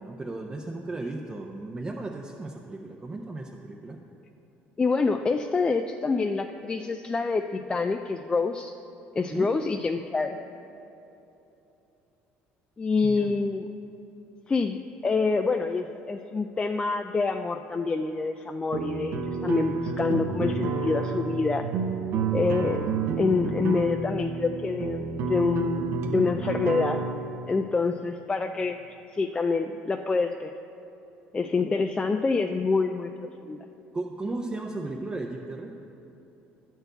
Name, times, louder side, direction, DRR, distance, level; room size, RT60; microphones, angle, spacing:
voice 1, 0.0-4.0 9.3-9.5 13.0-13.3 33.9-35.7, right 2 dB, 20° right, 0 dB, 0.6 m, -35 dB
voice 2, 4.8-8.7 9.1-10.4 12.8-13.7 14.5-21.7 22.3-22.9 23.2-27.0 27.5-28.8 29.1-30.5 31.3-33.1 33.4-33.6, left 4 dB, 20° left, 6 dB, 0.3 m, -26 dB
sound 1, 18.7-27.1, right 5 dB, 70° right, 0.8 m, -30 dB
10.5 x 4.5 x 7.9 m, 2.9 s
cardioid pair, 110°, 5 cm